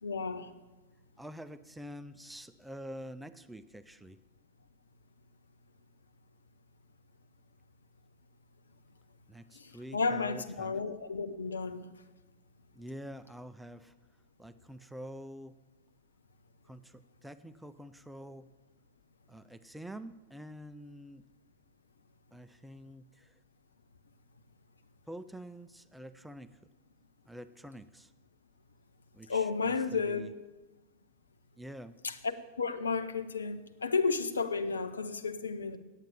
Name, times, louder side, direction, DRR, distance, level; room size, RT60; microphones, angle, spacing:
voice 1, 0.0-0.5 9.5-11.9 29.3-30.3 32.0-35.8, left 4 dB, 75° left, 0.7 m, -32 dB
voice 2, 1.2-4.2 9.3-10.7 12.7-13.9 14.4-15.6 16.6-18.5 19.3-21.2 22.3-23.3 25.1-26.6 27.3-28.1 29.1-30.3 31.6-32.0, equal, 5° right, 0.4 m, -47 dB
8.9 x 8.3 x 7.2 m
figure-of-eight pair, 90°, 0 cm